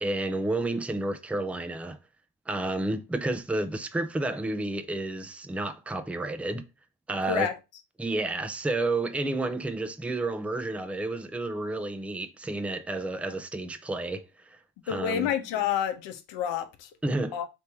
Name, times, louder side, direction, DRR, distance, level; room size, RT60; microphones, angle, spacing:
voice 1, 0.0-2.0 2.5-6.6 7.1-7.5 8.0-14.3 14.9-15.3 17.0-17.4, right 2 dB, 5° right, 0.5 m, -30 dB
voice 2, 14.9-16.9 17.3-17.5, left 9 dB, 65° left, 0.9 m, -29 dB
3.5 x 2.9 x 4.4 m
hypercardioid pair, 50°, 47 cm